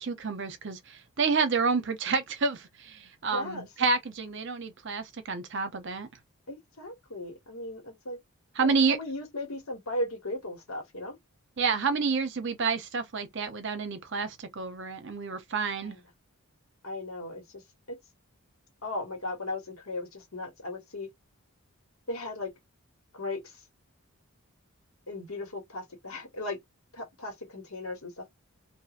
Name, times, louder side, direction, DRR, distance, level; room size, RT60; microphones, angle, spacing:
voice 1, 0.0-6.1 8.5-9.0 11.6-16.0, right 4 dB, 55° right, 0.7 m, -29 dB
voice 2, 3.3-3.7 6.5-8.2 8.6-11.2 15.8-15.9 16.8-17.4 18.8-21.1 22.1-22.5 23.1-23.4 25.1-26.6 26.9-28.3, left 1 dB, 75° left, 1.4 m, -36 dB
3.0 x 2.6 x 2.5 m
head